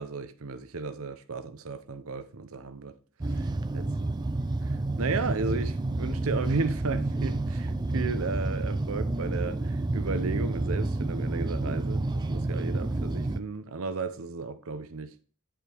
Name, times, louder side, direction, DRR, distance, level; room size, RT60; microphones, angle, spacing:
voice 1, 0.0-2.9 3.3-4.1 4.7-15.1, right 4 dB, 70° right, 0.7 m, -34 dB
sound 1, 3.2-13.4, right 2 dB, 20° right, 0.4 m, -29 dB
10.0 x 4.5 x 3.4 m
head